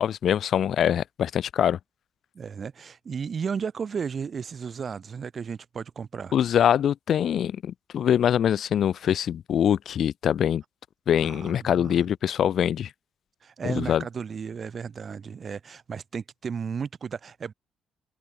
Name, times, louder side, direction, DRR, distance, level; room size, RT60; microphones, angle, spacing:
voice 1, 0.0-1.8 6.3-10.6 11.1-12.9 13.6-14.0, left 9 dB, 65° left, 0.4 m, -23 dB
voice 2, 2.3-6.4 11.2-12.0 13.4-17.5, right 6 dB, 45° right, 1.4 m, -34 dB
open air
cardioid pair, 90°, 0 cm